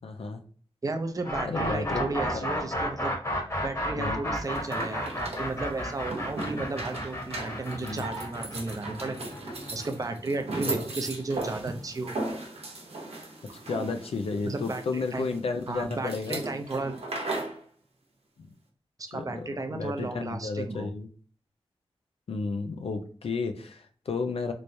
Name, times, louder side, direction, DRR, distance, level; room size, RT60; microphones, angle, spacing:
voice 1, 0.0-0.4 1.4-2.5 4.0-4.2 7.8-8.1 10.6-10.7 13.7-16.4 19.1-21.1 22.3-24.5, left 4 dB, 75° left, 6 dB, 0.5 m, -32 dB
voice 2, 0.8-3.2 3.6-9.2 9.7-12.2 14.4-15.3 15.7-17.0 19.1-20.9, right 3 dB, 35° right, 6 dB, 0.5 m, -34 dB
sound 1, 1.2-11.1, equal, 30° left, 1.1 m, -32 dB
sound 2, 4.4-17.6, right 2 dB, 85° right, 0.9 m, -37 dB
3.3 x 3.0 x 2.6 m, 0.43 s
wide cardioid pair, 110°, 10 cm